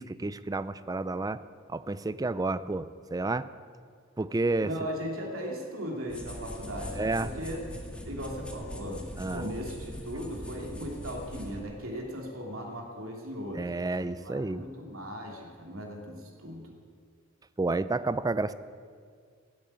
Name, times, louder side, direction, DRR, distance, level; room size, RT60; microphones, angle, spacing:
voice 1, 0.0-1.4 1.7-3.5 4.2-4.7 6.9-7.3 9.2-9.5 13.5-14.7 17.6-18.5, right 2 dB, 20° right, 15 dB, 0.4 m, -30 dB
voice 2, 4.6-7.6 8.0-13.7 14.0-16.7, equal, 80° right, 1 dB, 2.8 m, -38 dB
sound 1, 6.1-11.6, equal, 5° left, 1.9 m, -41 dB
16.0 x 8.8 x 8.9 m, 2.1 s
head